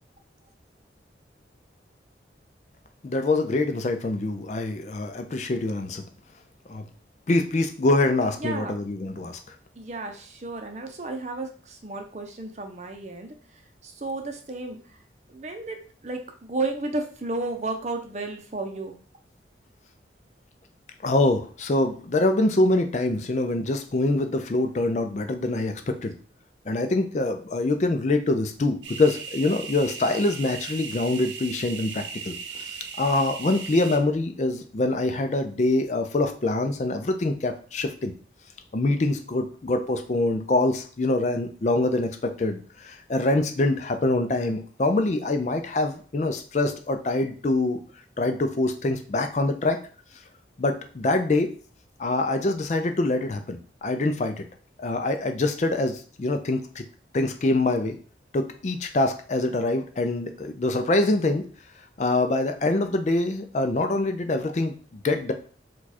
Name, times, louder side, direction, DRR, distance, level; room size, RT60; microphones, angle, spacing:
voice 1, 3.0-6.0 6.7-6.8 7.3-9.4 21.0-26.1 26.7-38.1 38.7-47.8 48.2-49.8 50.6-51.5 52.0-54.5 54.8-56.8 57.1-58.0 58.3-61.4 62.0-65.3, left 2 dB, 40° left, 6 dB, 0.4 m, -25 dB
voice 2, 8.4-8.7 9.8-15.0 15.3-18.9, right 2 dB, 40° right, 5 dB, 0.6 m, -33 dB
sound 1, 28.8-34.0, right 6 dB, 85° right, 0.7 m, -37 dB
4.7 x 2.4 x 4.1 m, 0.41 s
head